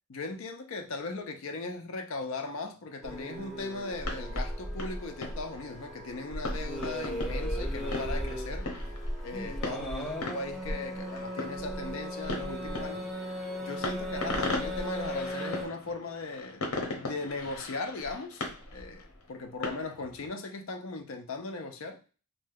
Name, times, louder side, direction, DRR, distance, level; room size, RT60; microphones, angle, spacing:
voice 1, 0.1-8.7 9.2-13.1 13.6-22.0, left 3 dB, 60° left, 0.5 m, -38 dB
sound 1, 3.0-15.7, equal, ahead, 0.4 m, -36 dB
sound 2, 3.9-20.3, left 2 dB, 85° left, 0.8 m, -40 dB
2.7 x 2.2 x 3.5 m
head